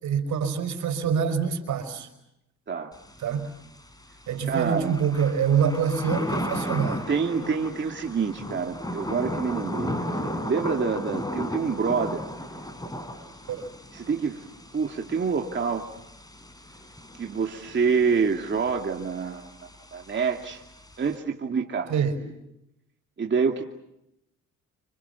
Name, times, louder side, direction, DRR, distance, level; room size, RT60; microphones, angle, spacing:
voice 1, 0.0-2.1 3.2-3.5 4.3-7.1 13.5-13.7 21.9-22.2, right 7 dB, 70° right, 8 dB, 5.5 m, -25 dB
Thunder / Rain, 2.9-21.2, left 1 dB, 10° left, 4.2 m, -36 dB
voice 2, 4.4-5.0 7.1-12.2 13.9-14.5 14.7-15.9 17.2-20.6 21.0-21.9 23.2-23.6, right 5 dB, 40° right, 2 dB, 2.5 m, -27 dB
30.0 x 27.5 x 7.1 m, 0.86 s
cardioid pair, 90°, 30 cm